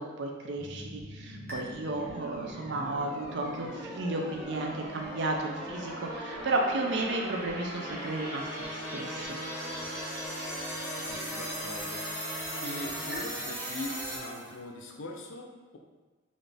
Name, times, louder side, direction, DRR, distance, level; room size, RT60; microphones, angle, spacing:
voice 1, 0.0-9.4, right 2 dB, 65° right, 1 dB, 0.5 m, -33 dB
sound 1, 0.6-14.6, right 1 dB, 45° right, 1.3 m, -39 dB
sound 2, 1.5-13.2, left 1 dB, 5° left, 0.8 m, -43 dB
voice 2, 11.1-12.0 12.6-15.8, left 1 dB, 85° left, 1 dB, 0.5 m, -41 dB
3.9 x 2.5 x 3.4 m, 1.3 s
head